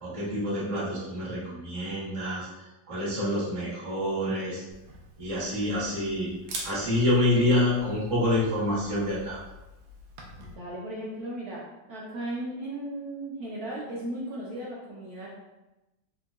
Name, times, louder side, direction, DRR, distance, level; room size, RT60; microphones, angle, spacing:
voice 1, 0.0-2.5 2.9-4.6 5.2-6.3 6.6-9.4, left 1 dB, 25° right, -7 dB, 0.7 m, -27 dB
Camera, 4.7-10.5, right 1 dB, 85° right, 1.3 m, -45 dB
voice 2, 10.4-11.6 11.9-15.3, right 1 dB, 65° right, -5 dB, 1.0 m, -36 dB
3.6 x 3.0 x 2.3 m, 0.98 s
omnidirectional pair, 2.0 m